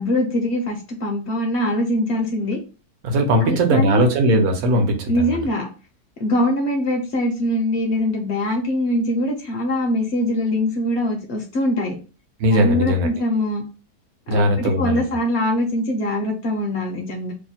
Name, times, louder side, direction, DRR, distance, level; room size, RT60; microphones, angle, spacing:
voice 1, 0.0-2.6 3.4-4.1 5.1-5.7 6.2-12.0 12.5-13.6 14.3-17.3, left 1 dB, 60° left, 2 dB, 0.7 m, -22 dB
voice 2, 3.0-5.4 12.4-13.1 14.3-15.0, equal, 70° right, 4 dB, 1.2 m, -19 dB
3.0 x 2.1 x 4.0 m, 0.33 s
omnidirectional pair, 1.7 m